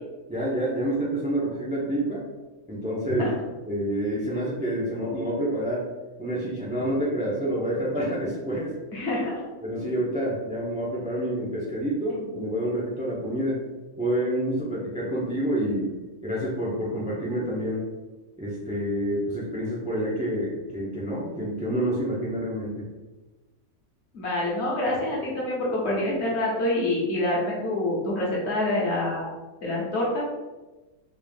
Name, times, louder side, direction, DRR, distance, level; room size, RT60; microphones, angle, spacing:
voice 1, 0.3-2.2 2.7-3.2 3.7-5.9 6.2-8.7 9.6-13.6 14.0-15.9 16.2-17.9 18.4-22.9, right 1 dB, 10° right, -6 dB, 0.4 m, -28 dB
voice 2, 8.9-9.4 24.1-30.3, left 1 dB, 55° left, -4 dB, 1.2 m, -26 dB
3.5 x 2.5 x 3.4 m, 1.2 s
omnidirectional pair, 1.5 m